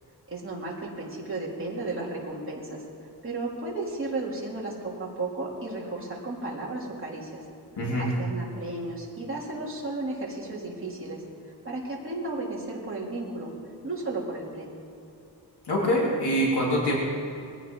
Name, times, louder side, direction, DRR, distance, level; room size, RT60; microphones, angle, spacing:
voice 1, 0.3-2.8 3.2-7.4 8.0-11.2 11.6-13.5 13.8-14.7, right 2 dB, 30° right, -4 dB, 3.4 m, -34 dB
voice 2, 7.8-8.1 15.7-17.0, equal, 75° left, -5 dB, 3.9 m, -24 dB
22.0 x 16.5 x 4.0 m, 2.6 s
wide cardioid pair, 155°, 41 cm